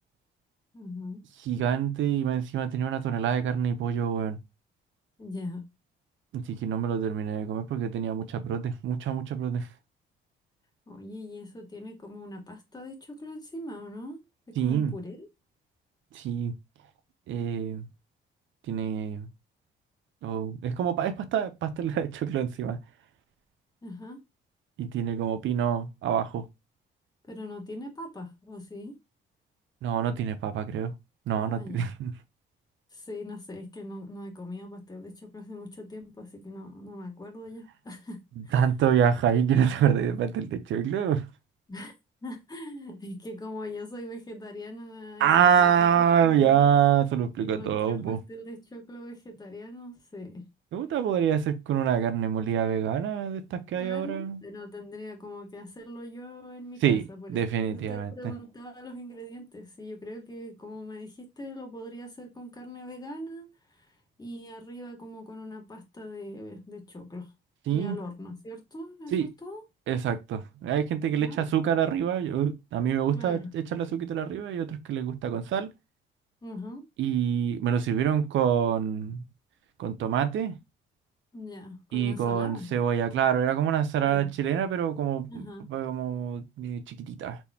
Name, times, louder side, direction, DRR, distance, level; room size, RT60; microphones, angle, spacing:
voice 1, 0.7-1.2 5.2-5.6 10.9-14.2 14.5-15.3 23.8-24.2 27.3-29.0 31.3-31.9 32.9-38.5 41.7-41.9 42.2-46.6 47.4-50.4 53.8-57.4 57.7-67.3 67.7-69.6 71.1-71.5 73.1-73.5 76.4-76.8 81.3-82.7 84.0-84.3 85.3-85.7, left 1 dB, 20° left, 1.5 m, -41 dB
voice 2, 1.5-4.4 6.3-9.7 14.6-14.9 16.1-16.5 17.3-17.9 18.7-19.3 20.2-22.8 24.8-26.5 29.8-30.9 31.3-32.1 38.5-41.3 45.2-48.2 50.7-54.4 56.8-58.1 67.7-68.0 69.1-69.3 69.9-75.7 77.0-79.2 79.8-80.6 81.9-87.4, right 8 dB, 75° right, 0.7 m, -26 dB
4.3 x 3.5 x 2.8 m
cardioid pair, 90°, 20 cm